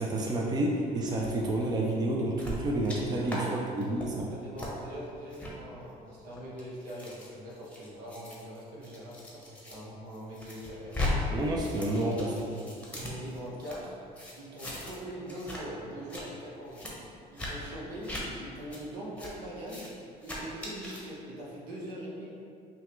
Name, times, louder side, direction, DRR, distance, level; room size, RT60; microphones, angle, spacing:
voice 1, 0.0-3.5 3.8-4.3 11.3-12.3, right 1 dB, 25° right, -2 dB, 0.5 m, -29 dB
sound 1, 2.4-3.0 3.3-3.4 3.8-4.1 4.6-4.7 5.3-5.5 6.2-9.8 10.1-11.1 11.4-13.8 14.2-15.0 15.3-15.6 15.9-16.2 16.7-16.9 17.4-17.5 18.0-18.2 18.7-18.8 19.2-19.3 19.6-19.9 20.2-21.0, left 1 dB, 10° left, 0.9 m, -38 dB
voice 2, 3.2-4.0 4.3-11.0 12.3-12.7 12.9-14.0 14.4-16.9 17.3-19.9 20.2-22.3, equal, 80° right, -5 dB, 1.1 m, -42 dB
5.6 x 2.3 x 3.0 m, 2.4 s
cardioid pair, 110°, 17 cm